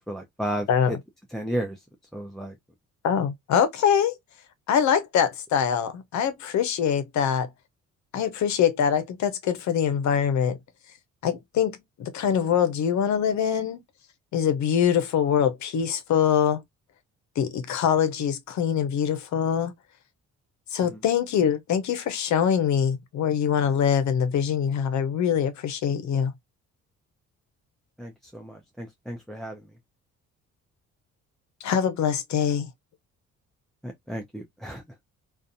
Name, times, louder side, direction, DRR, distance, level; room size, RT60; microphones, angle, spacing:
voice 1, 0.1-1.0 1.3-1.8 2.1-2.6 20.8-21.0 28.0-29.6 33.8-34.8, right 1 dB, ahead, 0.5 m, -33 dB
voice 2, 3.0-4.2 4.7-7.5 8.1-10.6 11.2-13.8 14.3-16.6 17.4-19.7 20.7-26.3 31.6-32.7, left 8 dB, 65° left, 0.7 m, -24 dB
2.5 x 2.3 x 2.5 m
cardioid pair, 90°, 30 cm